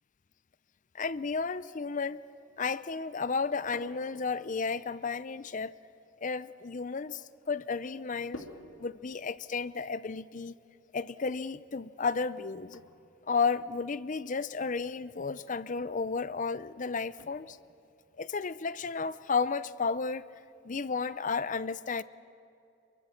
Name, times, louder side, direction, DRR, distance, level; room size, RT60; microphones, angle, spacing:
voice 1, 0.9-2.2 2.6-5.7 6.2-8.4 8.8-10.5 10.9-12.8 13.3-17.6 18.2-20.3 20.6-22.0, left 4 dB, 40° left, 16 dB, 0.5 m, -33 dB
sound 1, 3.3-21.4, left 1 dB, 85° left, 2.5 m, -56 dB
27.5 x 23.5 x 6.5 m, 2.7 s
head